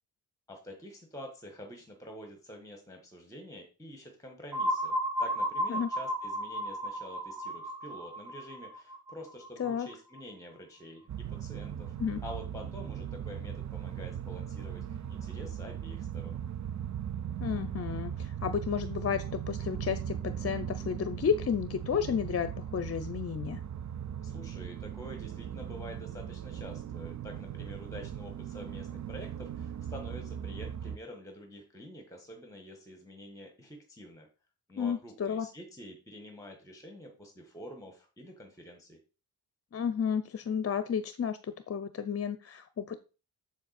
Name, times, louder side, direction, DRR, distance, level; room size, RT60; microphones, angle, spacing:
voice 1, 0.5-11.9 12.2-16.4 24.2-34.3 34.7-39.0, equal, 10° left, 3 dB, 1.6 m, -47 dB
sound 1, 4.5-10.2, equal, 65° right, 1.5 m, -34 dB
sound 2, 11.1-31.0, right 9 dB, 45° right, 0.5 m, -39 dB
voice 2, 17.4-23.6 34.8-35.5 39.7-43.0, left 7 dB, 40° left, 11 dB, 0.6 m, -32 dB
7.3 x 7.3 x 4.3 m, 0.33 s
wide cardioid pair, 155°, 38 cm